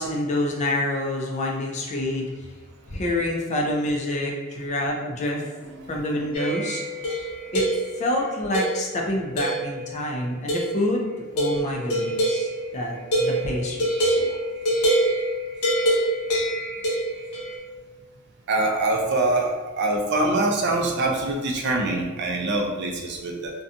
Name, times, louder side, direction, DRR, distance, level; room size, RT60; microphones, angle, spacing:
voice 1, 0.0-2.2 2.9-5.4 5.9-7.1 7.5-7.7 8.0-11.1 11.3-14.2, left 1 dB, 35° left, -1 dB, 0.4 m, -27 dB
voice 2, 5.8-6.3 14.2-14.4 18.5-23.6, right 2 dB, 50° right, 1 dB, 0.4 m, -24 dB
sound 1, 6.3-8.1 8.5-9.0 9.4-10.0 10.5-10.9 11.4-17.6, right 1 dB, 85° left, 0.6 m, -25 dB
2.7 x 2.2 x 2.4 m, 1.2 s
head